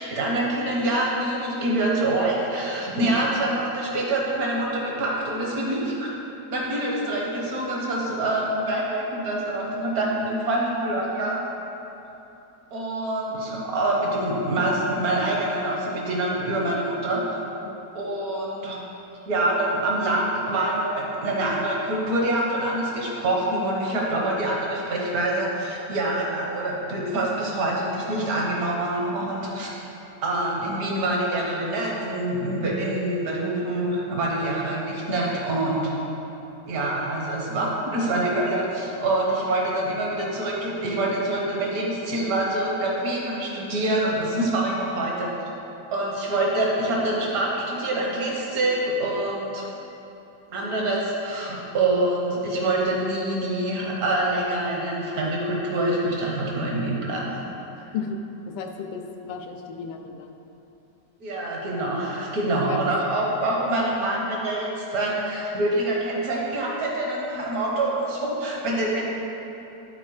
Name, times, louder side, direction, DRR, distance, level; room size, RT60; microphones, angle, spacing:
voice 1, 0.0-6.1 6.5-11.4 12.7-17.4 17.9-18.8 19.3-29.7 30.2-36.0 36.7-45.3 45.9-49.6 50.5-57.4 61.2-69.1, right 1 dB, 65° right, -3 dB, 1.7 m, -25 dB
voice 2, 58.5-60.4 62.5-62.8, left 6 dB, 90° left, 3 dB, 1.2 m, -34 dB
11.0 x 4.2 x 4.8 m, 3.0 s
omnidirectional pair, 1.8 m